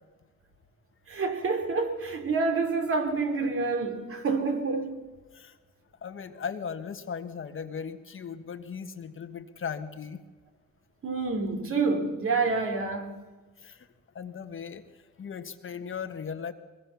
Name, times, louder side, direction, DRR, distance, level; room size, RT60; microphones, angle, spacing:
voice 1, 1.1-5.1 11.0-13.2, right 4 dB, 45° right, 3.0 m, -28 dB
voice 2, 6.0-10.2 13.6-13.9 14.1-16.5, left 6 dB, 45° left, 1.4 m, -38 dB
22.0 x 20.0 x 7.0 m
cardioid pair, 90°, 30 cm